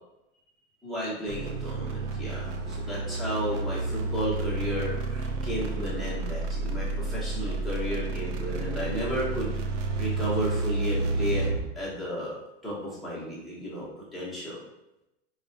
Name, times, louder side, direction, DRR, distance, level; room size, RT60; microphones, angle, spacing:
voice 1, 0.8-9.6 10.0-11.5 11.8-12.4 12.6-14.6, equal, ahead, -8 dB, 0.6 m, -33 dB
sound 1, 1.3-11.7, right 3 dB, 80° right, 0.6 m, -30 dB
3.5 x 2.1 x 2.5 m, 0.91 s
hypercardioid pair, 135°, 36 cm